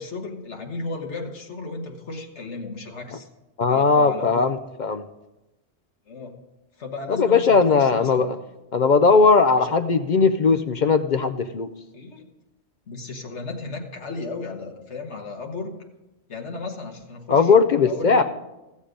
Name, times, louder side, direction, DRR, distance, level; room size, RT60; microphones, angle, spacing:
voice 1, 0.0-3.3 3.7-4.5 6.1-6.4 6.8-8.3 9.6-9.7 11.9-12.3 12.9-15.7 16.3-17.5 17.8-18.2, left 3 dB, 85° left, 2 dB, 1.7 m, -34 dB
voice 2, 3.6-5.0 7.1-8.4 8.7-11.7 17.3-18.2, left 4 dB, 55° left, 9 dB, 0.6 m, -18 dB
15.5 x 7.2 x 5.1 m, 0.98 s
omnidirectional pair, 1.1 m